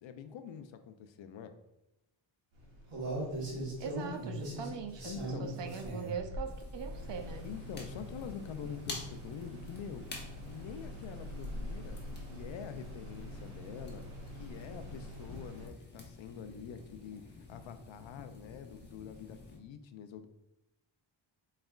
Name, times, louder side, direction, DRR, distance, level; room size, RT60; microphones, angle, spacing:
voice 1, 0.0-1.5 5.1-5.5 7.4-10.1 10.5-14.0 14.4-17.2 17.5-20.3, left 7 dB, 70° left, 9 dB, 0.5 m, -46 dB
sound 1, 2.5-15.7, equal, 80° right, 1.4 m, -42 dB
voice 2, 3.8-7.5, right 6 dB, 60° right, 6 dB, 0.6 m, -41 dB
sound 2, 6.4-19.6, left 3 dB, 20° left, 0.8 m, -50 dB
4.4 x 3.2 x 2.4 m, 0.91 s
cardioid pair, 95°, 48 cm